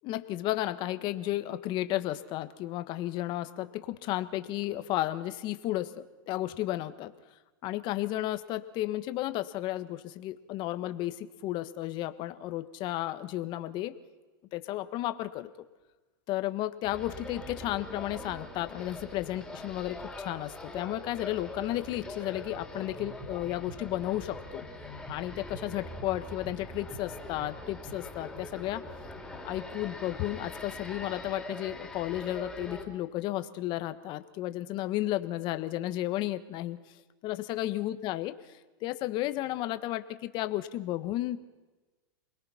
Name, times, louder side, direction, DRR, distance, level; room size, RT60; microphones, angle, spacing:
voice 1, 0.0-7.1 7.6-13.9 14.5-15.5 16.3-24.6 25.1-28.8 29.4-37.0 37.2-38.3 38.8-41.4, left 15 dB, 40° left, 11 dB, 1.5 m, -33 dB
sound 1, 16.8-32.8, left 1 dB, 5° left, 4.1 m, -43 dB
28.0 x 21.0 x 5.8 m, 1.2 s
hypercardioid pair, 130°, 12 cm